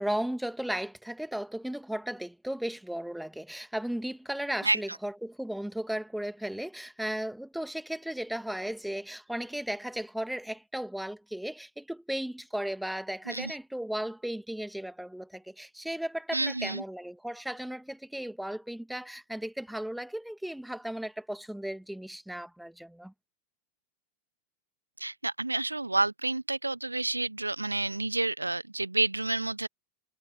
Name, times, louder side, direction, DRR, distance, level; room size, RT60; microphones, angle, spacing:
voice 1, 0.0-23.1, right 1 dB, ahead, 1.9 m, -35 dB
voice 2, 16.3-16.8 25.0-29.7, right 2 dB, 85° right, 0.6 m, -29 dB
figure-of-eight pair, 90°, 0 cm